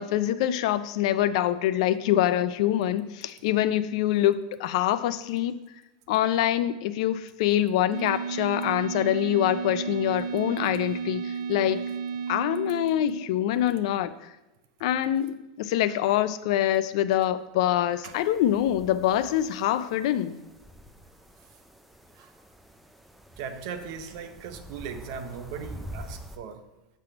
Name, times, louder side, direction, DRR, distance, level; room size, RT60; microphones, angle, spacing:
voice 1, 0.0-5.5 6.1-11.8 12.3-14.1 14.8-20.4, left 12 dB, 65° left, 0.4 m, -25 dB
sound 1, 7.9-13.5, right 6 dB, 85° right, 0.3 m, -33 dB
sound 2, 18.1-26.4, equal, ahead, 0.4 m, -46 dB
voice 2, 23.4-26.7, right 6 dB, 55° right, 0.7 m, -38 dB
7.2 x 3.4 x 5.9 m
supercardioid pair, 155°, 4 cm